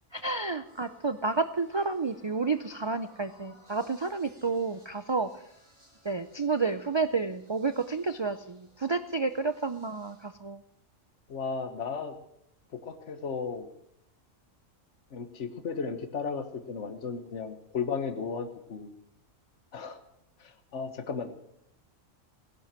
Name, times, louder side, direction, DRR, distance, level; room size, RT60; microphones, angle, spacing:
voice 1, 0.1-5.4 6.0-10.6, right 4 dB, 50° right, 11 dB, 0.3 m, -30 dB
sound 1, 0.6-10.3, right 1 dB, 20° right, 7.6 m, -60 dB
voice 2, 11.3-12.1 12.7-13.7 15.1-18.9 19.7-20.0 20.4-21.3, left 5 dB, 65° left, 8 dB, 1.5 m, -35 dB
17.0 x 11.0 x 7.5 m, 0.76 s
omnidirectional pair, 1.3 m